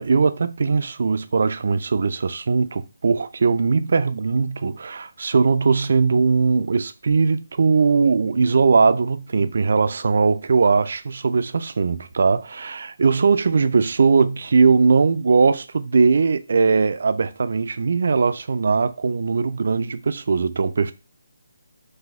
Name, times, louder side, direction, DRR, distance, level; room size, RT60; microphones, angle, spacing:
voice 1, 0.0-20.9, right 4 dB, 60° right, 0.4 m, -20 dB
4.0 x 2.6 x 3.6 m
figure-of-eight pair, 160°, 0 cm